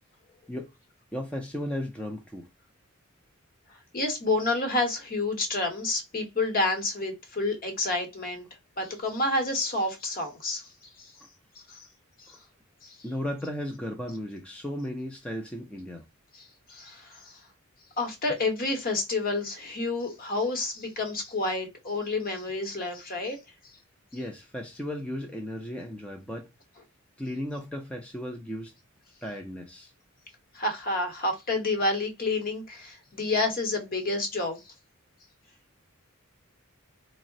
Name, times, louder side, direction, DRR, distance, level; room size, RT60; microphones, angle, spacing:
voice 1, 1.1-2.5 12.3-12.4 13.0-16.1 24.1-26.5 27.2-28.7 29.2-29.9, left 1 dB, 5° left, 0.4 m, -35 dB
voice 2, 3.9-8.4 8.8-10.7 11.0-11.1 11.7-11.8 12.2-12.4 12.8-13.0 16.7-17.3 18.0-23.4 30.5-34.6, left 2 dB, 45° left, 0.9 m, -29 dB
3.7 x 2.0 x 2.5 m
head